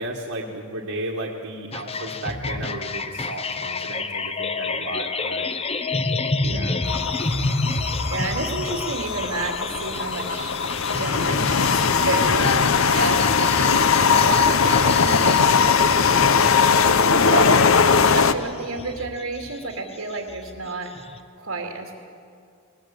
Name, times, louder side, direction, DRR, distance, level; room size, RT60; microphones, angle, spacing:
voice 1, 0.0-5.5 6.4-6.9 17.3-17.6, right 2 dB, 70° right, -2 dB, 1.9 m, -32 dB
sound 1, 1.7-21.2, left 3 dB, 30° left, 0.9 m, -30 dB
voice 2, 6.5-7.0 8.1-10.5 10.9-13.8 14.1-17.7 18.1-20.9 21.4-22.0, right 3 dB, 90° right, 1 dB, 2.7 m, -31 dB
sound 2, 6.9-18.3, left 5 dB, 70° left, 0.8 m, -20 dB
21.0 x 20.5 x 8.6 m, 2.3 s
head